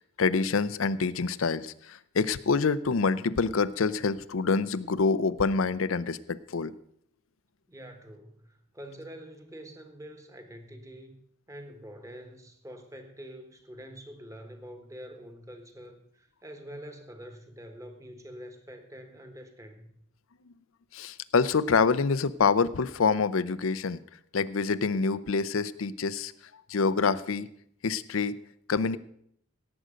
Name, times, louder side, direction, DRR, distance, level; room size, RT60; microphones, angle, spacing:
voice 1, 0.0-6.7 20.9-24.0 24.3-26.3 26.7-27.5 27.8-28.4 28.7-29.0, left 4 dB, 90° left, 15 dB, 0.6 m, -26 dB
voice 2, 7.7-11.2 11.5-19.9, equal, 15° right, 6 dB, 1.4 m, -46 dB
17.5 x 8.0 x 5.1 m, 0.68 s
head